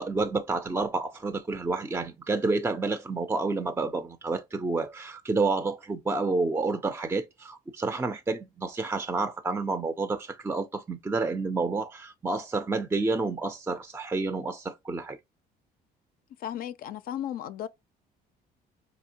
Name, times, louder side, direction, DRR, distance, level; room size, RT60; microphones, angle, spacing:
voice 1, 0.0-15.2, right 3 dB, 15° right, 0.4 m, -29 dB
voice 2, 16.4-17.7, left 10 dB, 60° left, 0.4 m, -35 dB
4.8 x 2.8 x 2.8 m
cardioid pair, 110°, 17 cm